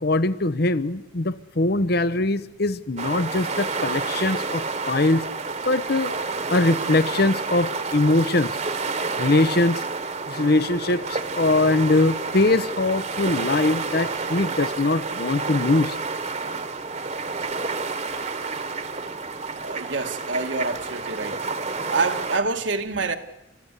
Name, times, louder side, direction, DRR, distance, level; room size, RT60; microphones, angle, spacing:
voice 1, 0.0-5.2 5.6-6.1 6.5-8.6 9.2-9.8 10.3-16.0, left 2 dB, 55° left, 0.9 m, -22 dB
sound 1, 3.0-22.4, right 4 dB, 35° right, 1.3 m, -29 dB
voice 2, 19.6-21.4 21.9-23.1, right 3 dB, 70° right, 1.7 m, -27 dB
30.0 x 14.5 x 8.2 m
head